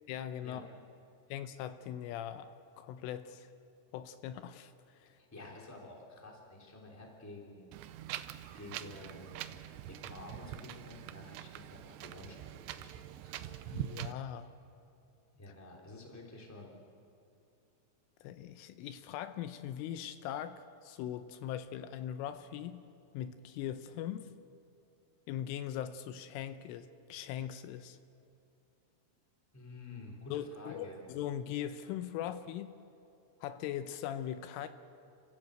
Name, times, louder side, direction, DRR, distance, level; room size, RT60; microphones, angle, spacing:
voice 1, 0.1-0.7 1.3-3.5 3.9-5.2 13.7-14.5 18.2-22.8 23.1-24.3 25.3-28.0 30.3-32.8 33.4-34.7, left 10 dB, 80° left, 10 dB, 3.2 m, -40 dB
voice 2, 5.2-7.7 8.5-13.5 15.4-16.7 29.5-31.0, left 2 dB, 5° left, -1 dB, 2.1 m, -50 dB
Wind, 7.7-14.1, right 13 dB, 90° right, 2.4 m, -44 dB
30.0 x 15.5 x 7.9 m, 2.7 s
omnidirectional pair, 5.8 m